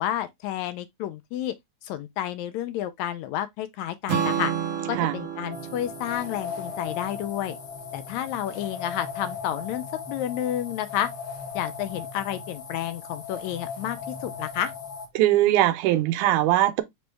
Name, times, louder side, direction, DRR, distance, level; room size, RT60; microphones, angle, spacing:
voice 1, 0.0-1.5 1.8-4.5 4.9-7.6 7.9-11.1 11.5-14.7, left 11 dB, 80° left, 1.8 m, -30 dB
Strum, 4.1-8.3, right 8 dB, 60° right, 1.4 m, -32 dB
sound 1, 5.5-15.1, left 5 dB, 55° left, 1.7 m, -37 dB
voice 2, 15.2-16.8, right 14 dB, 85° right, 2.2 m, -21 dB
5.1 x 3.1 x 3.3 m
omnidirectional pair, 3.5 m